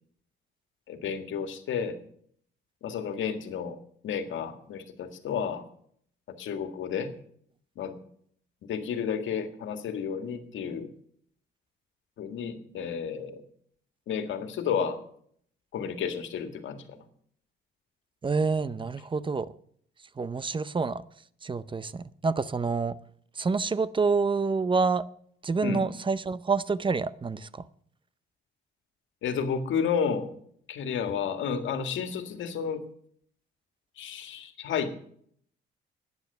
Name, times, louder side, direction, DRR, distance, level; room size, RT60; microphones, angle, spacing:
voice 1, 0.9-2.0 2.8-3.8 4.0-5.6 6.4-7.1 7.8-8.0 8.6-10.9 12.2-13.4 14.1-15.0 15.7-16.8 25.6-25.8 29.2-30.3 30.7-32.8 34.0-35.1, left 7 dB, 75° left, 8 dB, 1.8 m, -31 dB
voice 2, 18.2-19.5 20.2-21.0 21.4-23.0 23.4-25.0 25.4-27.6, right 4 dB, 25° right, 17 dB, 0.6 m, -27 dB
11.5 x 9.7 x 6.6 m, 0.63 s
cardioid pair, 90°, 20 cm